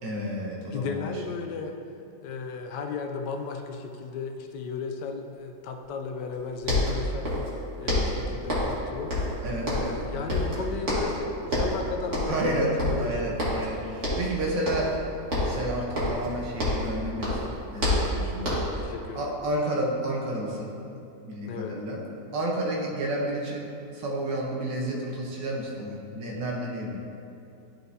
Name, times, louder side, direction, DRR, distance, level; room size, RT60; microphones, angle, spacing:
voice 1, 0.0-1.2 9.4-10.0 12.3-14.9 15.4-18.6 19.1-20.7 21.2-22.0 22.3-27.0, right 1 dB, 85° right, -2 dB, 1.7 m, -31 dB
voice 2, 0.7-1.8 2.2-7.3 7.8-9.2 9.7-13.4 18.7-19.3 21.5-21.7, left 5 dB, 75° left, 4 dB, 1.1 m, -35 dB
sound 1, 6.3-6.4 6.6-7.6 7.9-8.8 9.1-10.0 10.3-11.2 11.5-11.8 12.1-12.5 12.8-13.7 14.0-14.3 14.6-15.0 15.3-16.9 17.2-18.8, left 1 dB, 45° right, 1.9 m, -27 dB
11.5 x 4.6 x 2.7 m, 2.6 s
omnidirectional pair, 1.9 m